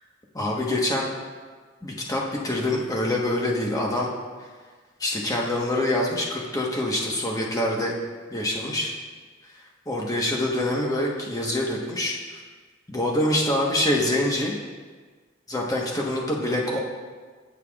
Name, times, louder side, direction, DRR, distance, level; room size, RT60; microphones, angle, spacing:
voice 1, 0.3-1.1 1.8-4.1 5.0-7.9 8.3-8.9 9.9-12.4 12.9-14.6 15.5-16.8, left 1 dB, 20° left, -2 dB, 1.2 m, -25 dB
17.5 x 5.8 x 2.4 m, 1.5 s
head